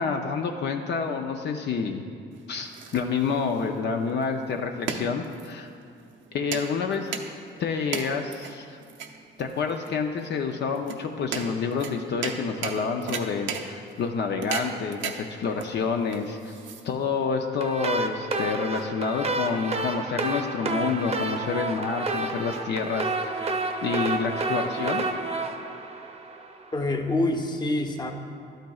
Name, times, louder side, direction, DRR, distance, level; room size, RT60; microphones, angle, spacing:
voice 1, 0.0-2.0 2.5-5.7 6.3-7.1 7.6-8.8 9.4-16.6 16.8-23.5 23.8-25.0, left 5 dB, 60° left, 4 dB, 0.6 m, -28 dB
sound 1, 2.3-17.2, right 6 dB, 75° right, 0.7 m, -37 dB
sound 2, 17.6-26.7, right 3 dB, 30° right, 0.7 m, -30 dB
voice 2, 26.7-28.1, left 2 dB, 20° left, 4 dB, 0.8 m, -26 dB
11.5 x 9.0 x 2.4 m, 2.3 s
cardioid pair, 90°, 20 cm